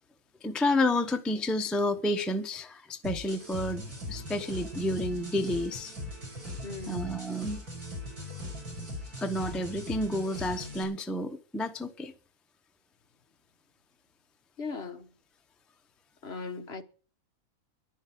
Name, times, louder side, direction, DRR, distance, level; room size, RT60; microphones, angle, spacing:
voice 1, 0.4-3.8 4.1-5.9 6.9-7.6 9.2-12.1, left 1 dB, ahead, 0.7 m, -30 dB
sound 1, 3.0-10.8, left 1 dB, 85° right, 5.6 m, -40 dB
voice 2, 6.6-7.1 14.6-15.1 16.2-16.8, left 4 dB, 45° left, 1.4 m, -38 dB
11.5 x 11.0 x 8.3 m
omnidirectional pair, 1.6 m